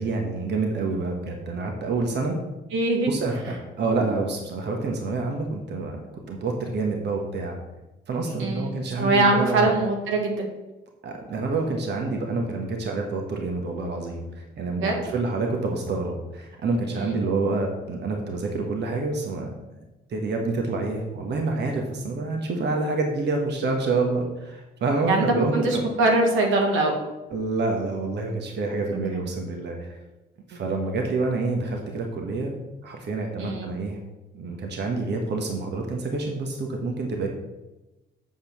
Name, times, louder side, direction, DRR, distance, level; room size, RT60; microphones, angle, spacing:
voice 1, 0.0-2.4 3.0-6.0 6.3-7.6 8.1-9.7 11.0-19.5 20.1-25.8 27.3-30.0 30.5-32.5 32.8-34.0 34.3-37.3, right 3 dB, 60° right, 2 dB, 1.4 m, -27 dB
voice 2, 2.7-3.1 8.4-10.5 14.8-15.0 16.9-17.1 25.1-26.9 33.4-33.7, right 2 dB, 85° right, 1 dB, 1.8 m, -22 dB
8.1 x 5.1 x 6.1 m, 1.1 s
cardioid pair, 90°, 20 cm